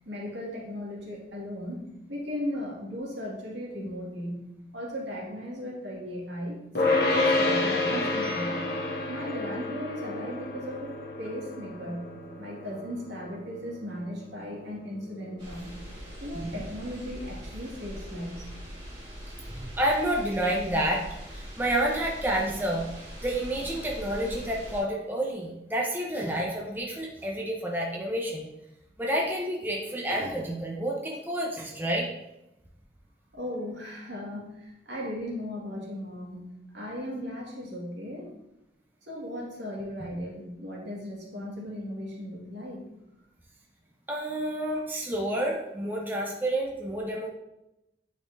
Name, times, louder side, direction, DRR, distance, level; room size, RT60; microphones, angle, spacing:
voice 1, 0.0-6.6 6.8-8.7 9.1-12.0 12.4-15.8 16.2-18.5 33.3-36.4 36.7-38.3 39.0-42.8, equal, 75° right, -4 dB, 2.0 m, -37 dB
sound 1, 6.7-18.1, left 2 dB, 60° left, 1.0 m, -30 dB
sound 2, 15.4-24.8, equal, 25° right, 2.1 m, -42 dB
voice 2, 19.5-21.0 21.3-22.8 23.2-28.5 29.0-32.1 44.1-47.3, right 1 dB, 10° right, -2 dB, 0.7 m, -29 dB
9.1 x 4.3 x 2.7 m, 0.91 s
head